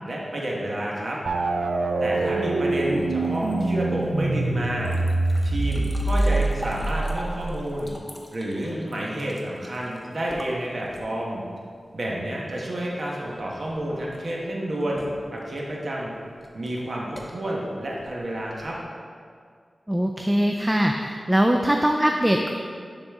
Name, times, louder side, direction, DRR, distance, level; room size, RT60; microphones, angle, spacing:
voice 1, 0.0-1.2 2.0-5.0 5.4-7.9 8.3-11.4 11.9-16.1 16.5-18.8, right 1 dB, 55° right, -3 dB, 1.2 m, -30 dB
sound 1, 1.3-7.9, right 2 dB, 75° right, 0.4 m, -25 dB
sound 2, 2.7-11.3 13.1-18.8, equal, 10° left, 0.8 m, -43 dB
voice 2, 19.9-22.5, equal, 10° right, 2 dB, 0.4 m, -21 dB
10.0 x 4.0 x 3.6 m, 2.2 s
wide cardioid pair, 85°, 0 cm